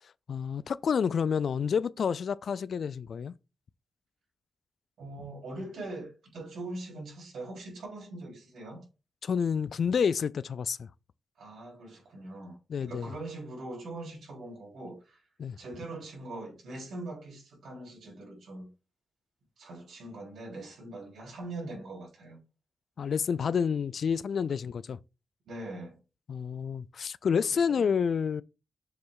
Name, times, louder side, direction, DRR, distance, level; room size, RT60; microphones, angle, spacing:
voice 1, 0.3-3.3 9.2-10.9 12.7-13.1 15.4-15.6 23.0-25.0 26.3-28.4, left 6 dB, 70° left, 0.3 m, -29 dB
voice 2, 5.0-8.9 11.4-15.2 15.6-18.7 19.6-22.4 23.3-23.4 25.5-26.0 27.5-27.9, right 2 dB, 90° right, 3.5 m, -42 dB
7.1 x 3.2 x 4.7 m
cardioid pair, 75°, 0 cm